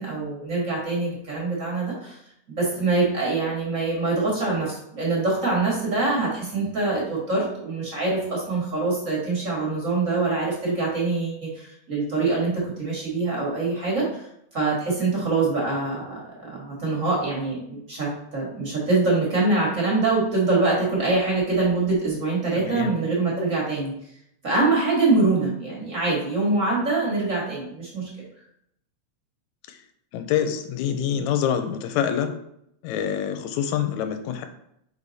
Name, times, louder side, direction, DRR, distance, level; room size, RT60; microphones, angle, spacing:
voice 1, 0.0-2.2 2.5-14.3 14.5-23.9 24.4-28.1, right 3 dB, 35° right, -4 dB, 1.5 m, -24 dB
voice 2, 22.6-23.0 29.7-29.8 30.1-32.3 32.8-34.4, left 9 dB, 85° left, 7 dB, 1.9 m, -26 dB
5.0 x 4.9 x 4.1 m, 0.75 s
omnidirectional pair, 3.3 m